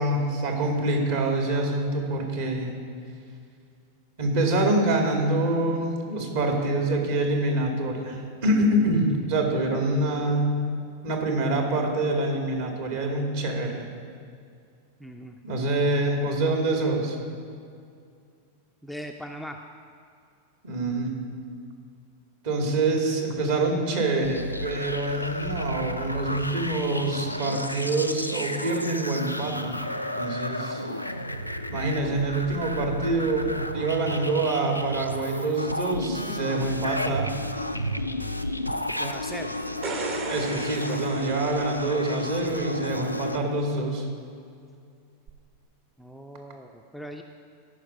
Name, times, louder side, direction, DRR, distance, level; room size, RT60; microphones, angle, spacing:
voice 1, 0.0-2.7 4.2-10.6 11.0-13.9 15.4-17.2 20.6-21.2 22.4-29.8 30.2-30.8 31.7-37.3 40.3-44.1, right 2 dB, 55° right, 1 dB, 2.1 m, -26 dB
voice 2, 15.0-15.4 18.8-19.6 38.9-39.6 46.0-47.2, equal, ahead, 4 dB, 0.5 m, -39 dB
sound 1, 24.2-43.4, left 1 dB, 90° left, 0.4 m, -32 dB
sound 2, 39.6-42.2 45.3-45.4, right 4 dB, 35° right, 1.0 m, -36 dB
14.0 x 5.8 x 5.3 m, 2.3 s
figure-of-eight pair, 90°, 0 cm